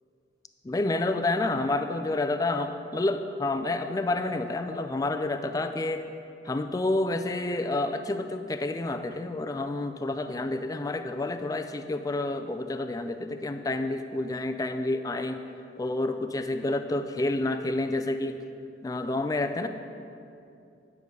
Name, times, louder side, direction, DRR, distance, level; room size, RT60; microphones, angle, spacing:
voice 1, 0.6-6.0 6.4-15.4 15.8-18.4 18.8-19.7, left 2 dB, 20° left, 7 dB, 0.3 m, -29 dB
10.5 x 4.8 x 6.7 m, 2.7 s
head